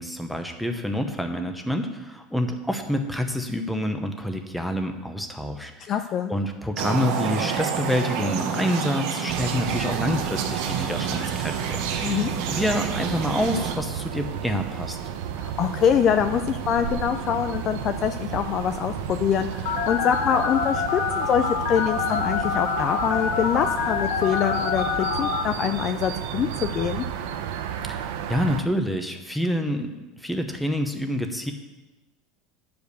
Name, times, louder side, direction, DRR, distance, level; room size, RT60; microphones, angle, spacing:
voice 1, 0.0-5.9 6.3-12.1 12.5-15.0 27.9-28.0 28.3-31.5, equal, ahead, 5 dB, 0.9 m, -27 dB
voice 2, 5.9-6.3 12.0-12.3 15.4-27.0, left 8 dB, 35° left, 8 dB, 0.4 m, -24 dB
sound 1, 6.8-13.7, right 7 dB, 60° right, 1.1 m, -29 dB
sound 2, 9.3-28.6, right 8 dB, 80° right, 0.8 m, -33 dB
Telephone, 19.6-25.4, left 6 dB, 75° left, 1.1 m, -26 dB
10.0 x 5.2 x 6.8 m, 1.1 s
supercardioid pair, 155°, 0 cm